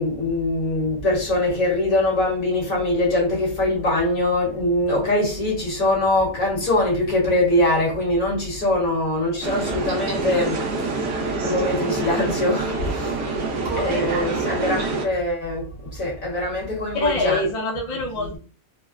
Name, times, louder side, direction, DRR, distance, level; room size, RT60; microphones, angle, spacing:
voice 1, 0.0-13.2 13.8-17.5 18.1-18.4, left 1 dB, 75° left, 1.8 m, -23 dB
sound 1, 9.4-15.0, right 3 dB, 75° right, 1.1 m, -26 dB
voice 2, 16.9-18.4, left 2 dB, 45° left, 0.5 m, -25 dB
4.0 x 2.1 x 2.3 m
omnidirectional pair, 1.5 m